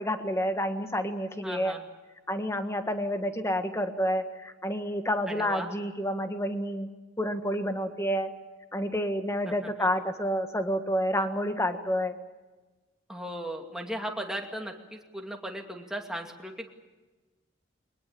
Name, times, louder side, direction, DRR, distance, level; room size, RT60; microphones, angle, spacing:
voice 1, 0.0-1.7 2.3-6.9 7.2-8.3 8.7-12.2, equal, 15° left, 7 dB, 1.6 m, -29 dB
voice 2, 1.4-1.9 5.3-5.7 9.5-9.9 13.1-16.7, equal, 5° right, 2 dB, 2.4 m, -37 dB
22.5 x 21.0 x 8.6 m, 1.2 s
head